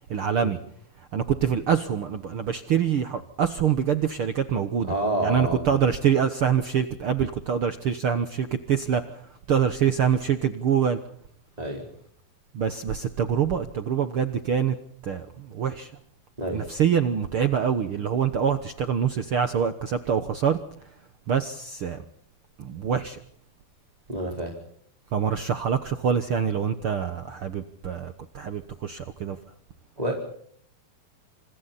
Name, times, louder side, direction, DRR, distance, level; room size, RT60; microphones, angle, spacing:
voice 1, 0.1-0.6 1.1-4.9 5.2-9.2 9.5-11.0 12.5-14.8 15.0-15.9 16.5-20.6 21.3-22.0 22.6-23.2 25.1-29.4, right 8 dB, 75° right, 10 dB, 1.2 m, -25 dB
voice 2, 4.9-5.8 11.6-11.8 16.4-16.6 24.1-24.5 30.0-30.2, right 1 dB, 10° right, 0 dB, 4.1 m, -28 dB
29.5 x 27.5 x 4.2 m, 0.63 s
omnidirectional pair, 4.2 m